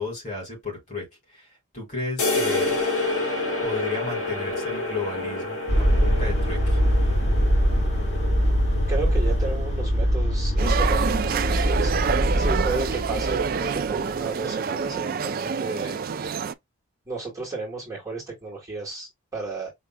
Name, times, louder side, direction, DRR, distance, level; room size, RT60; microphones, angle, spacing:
voice 1, 0.0-1.5 1.7-2.8 3.6-6.8, left 3 dB, 35° left, 2.6 m, -33 dB
sound 1, 2.2-9.7, left 2 dB, 80° left, 2.5 m, -29 dB
sound 2, 5.7-14.0, equal, 50° left, 2.6 m, -23 dB
voice 2, 8.9-12.1 12.4-16.0 17.1-19.7, right 3 dB, 15° right, 2.0 m, -33 dB
sound 3, 10.6-16.5, right 6 dB, 40° right, 0.3 m, -27 dB
5.4 x 3.4 x 2.3 m
head